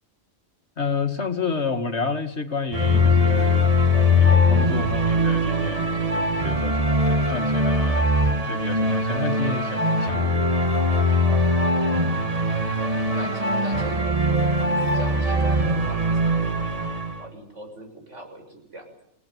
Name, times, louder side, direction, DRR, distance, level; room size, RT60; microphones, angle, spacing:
voice 1, 0.8-3.7 4.1-8.1 8.4-10.7, left 4 dB, 65° left, 8 dB, 2.4 m, -30 dB
sound 1, 2.7-17.2, left 1 dB, 30° right, 2.2 m, -21 dB
voice 2, 13.1-16.5 17.2-19.0, equal, 85° right, 4 dB, 7.1 m, -41 dB
28.5 x 18.0 x 9.4 m, 0.71 s
omnidirectional pair, 1.2 m